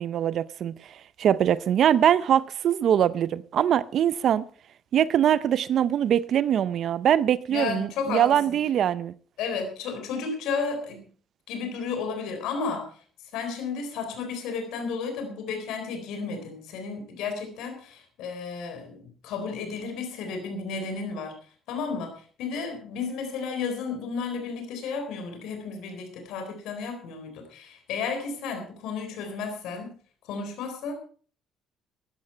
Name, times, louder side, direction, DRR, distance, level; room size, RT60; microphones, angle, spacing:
voice 1, 0.0-4.4 4.9-9.1, right 10 dB, 55° right, 0.6 m, -23 dB
voice 2, 7.5-8.6 9.4-11.1 11.5-12.9 13.3-21.4 21.7-29.9 30.2-30.9, left 5 dB, 85° left, 4.1 m, -33 dB
14.5 x 12.0 x 4.5 m
cardioid pair, 135°, 0 cm